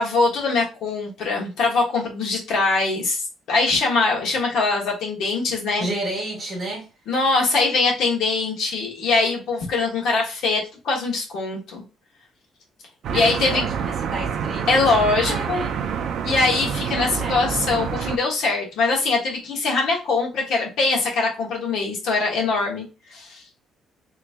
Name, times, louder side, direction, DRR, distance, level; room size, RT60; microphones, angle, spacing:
voice 1, 0.0-5.9 7.1-11.8 13.1-13.6 14.7-15.6 16.2-23.6, left 3 dB, 65° left, 1.3 m, -22 dB
voice 2, 5.8-6.9 13.1-14.9 15.2-15.7 16.9-17.4, right 2 dB, 30° right, 1.6 m, -31 dB
sound 1, 13.0-18.2, right 7 dB, 55° right, 0.4 m, -27 dB
3.0 x 2.6 x 3.4 m
cardioid pair, 160°, 0 cm